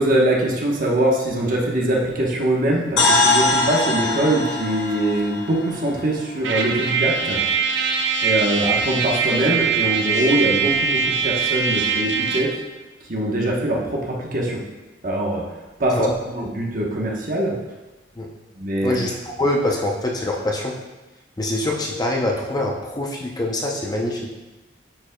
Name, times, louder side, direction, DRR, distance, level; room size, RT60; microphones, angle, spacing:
voice 1, 0.0-7.4 8.2-12.5 13.1-14.6 15.0-15.5 15.8-17.6 18.6-19.0, right 1 dB, 50° right, -2 dB, 1.0 m, -22 dB
sound 1, 3.0-6.9, left 2 dB, 80° left, 1.1 m, -22 dB
Trumpet, 6.4-12.6, right 5 dB, 80° right, 0.7 m, -22 dB
voice 2, 18.8-20.7 21.4-24.3, left 1 dB, 20° left, 0 dB, 0.6 m, -24 dB
8.6 x 5.0 x 2.2 m, 1.1 s
head